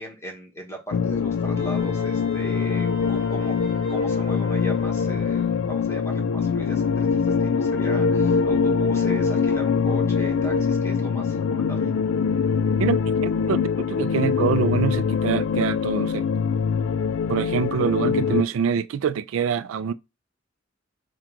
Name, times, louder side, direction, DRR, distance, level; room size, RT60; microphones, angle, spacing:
voice 1, 0.0-3.6 3.9-11.9, equal, 15° left, 1.1 m, -37 dB
sound 1, 0.9-18.4, left 6 dB, 75° left, 0.3 m, -23 dB
Wind instrument woodwind instrument, 1.6-5.8, right 4 dB, 25° right, 1.1 m, -46 dB
voice 2, 12.8-16.2 17.3-19.9, right 7 dB, 85° right, 0.3 m, -25 dB
3.7 x 2.2 x 4.5 m
head